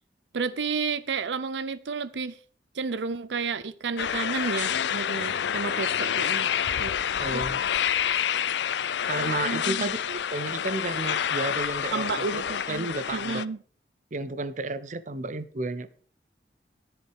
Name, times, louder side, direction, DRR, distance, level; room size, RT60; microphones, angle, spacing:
voice 1, 0.3-2.3 2.7-6.5 6.8-6.9 7.3-7.4 9.4-9.9 11.9-13.6, right 5 dB, 85° right, 0.6 m, -31 dB
sound 1, 4.0-13.4, left 9 dB, 80° left, 0.5 m, -28 dB
voice 2, 7.2-7.6 9.0-12.4 12.7-13.4 14.1-15.9, right 2 dB, 45° right, 0.7 m, -32 dB
10.5 x 10.5 x 4.8 m
head